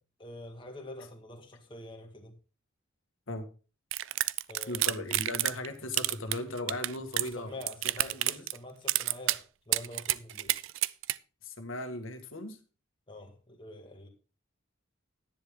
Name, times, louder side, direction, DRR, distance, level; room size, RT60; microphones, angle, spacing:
voice 1, 0.2-2.3 4.5-5.0 7.1-10.5 13.1-14.1, left 1 dB, 25° left, 2 dB, 1.9 m, -46 dB
sound 1, 3.9-5.7 5.9-7.3 7.6-8.6 8.9-9.4 9.7-11.1, right 16 dB, 75° right, 0.4 m, -29 dB
voice 2, 4.7-7.6 8.0-8.4 11.4-12.6, left 1 dB, 85° left, 6 dB, 1.7 m, -37 dB
10.5 x 10.0 x 3.7 m, 0.33 s
head